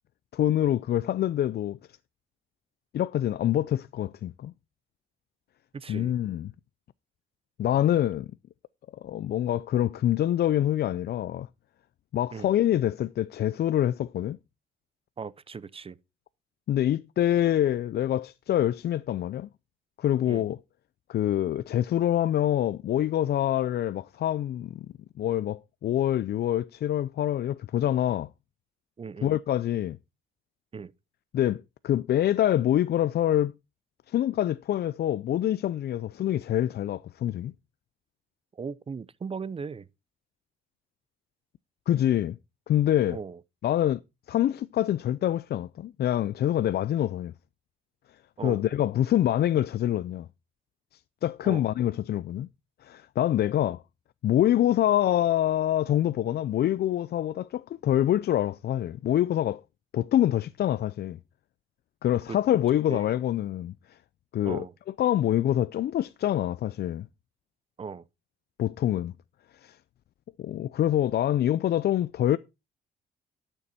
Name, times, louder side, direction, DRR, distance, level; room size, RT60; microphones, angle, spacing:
voice 1, 0.3-1.8 2.9-4.5 5.9-6.5 7.6-8.3 9.0-11.5 12.1-14.4 16.7-19.5 20.0-20.6 21.1-24.9 25.2-28.3 29.2-30.0 31.3-33.5 34.1-37.5 41.9-42.4 42.7-43.2 43.6-44.0 44.3-47.3 48.4-50.3 51.2-52.5 52.8-53.8 54.2-59.6 59.9-61.2 62.0-63.7 64.3-64.6 65.0-67.1 68.6-69.1 69.6-69.8 70.4-72.4, left 12 dB, 55° left, 0.4 m, -25 dB
voice 2, 5.7-6.1 12.3-12.5 15.2-16.0 20.3-20.5 29.0-29.3 30.7-30.9 38.5-39.9 43.1-43.4 48.4-48.6 51.4-51.6 62.3-62.4 62.9-63.1 64.4-64.7 67.8-68.0, right 5 dB, 30° right, 0.6 m, -37 dB
12.0 x 6.9 x 4.2 m
cardioid pair, 90°, 20 cm